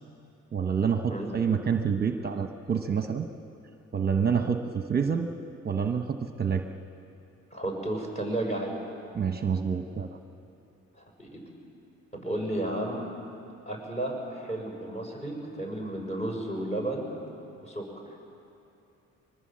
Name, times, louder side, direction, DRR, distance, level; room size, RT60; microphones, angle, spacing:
voice 1, 0.5-3.3 3.9-5.3 5.6-6.7 9.1-10.2, right 6 dB, 30° right, 6 dB, 1.0 m, -27 dB
voice 2, 7.5-8.7 10.9-11.4 12.1-13.1 13.7-17.1 17.6-17.8, right 1 dB, 20° left, 0 dB, 6.4 m, -32 dB
23.5 x 20.0 x 7.6 m, 2.8 s
cardioid pair, 90°, 30 cm